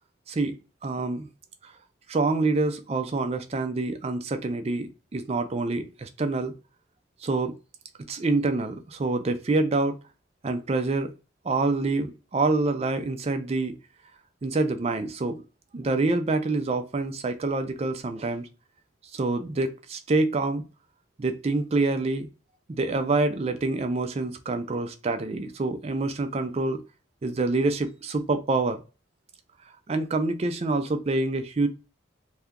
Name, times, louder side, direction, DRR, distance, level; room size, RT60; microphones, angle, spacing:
voice 1, 0.3-1.3 1.6-1.7 2.1-6.5 7.2-7.6 8.1-9.9 10.4-11.1 11.4-13.8 14.4-15.4 15.7-18.5 19.1-20.6 21.2-22.3 22.7-26.8 27.2-28.8 29.9-31.7, right 3 dB, 30° right, 0.4 m, -26 dB
2.7 x 2.3 x 3.5 m
head